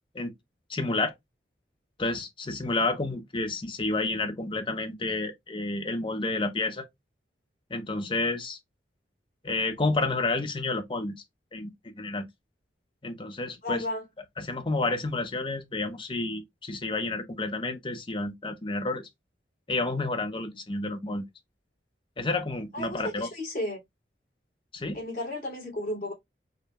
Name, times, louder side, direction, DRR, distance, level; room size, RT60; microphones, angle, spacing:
voice 1, 0.7-1.1 2.0-6.9 7.7-8.6 9.4-11.1 11.5-12.3 13.0-13.8 14.4-19.1 19.7-21.2 22.2-23.3 24.7-25.0, left 2 dB, 30° left, 0.6 m, -30 dB
voice 2, 13.6-14.0 22.7-23.8 24.9-26.1, left 1 dB, 50° left, 2.7 m, -33 dB
4.8 x 2.7 x 2.2 m
head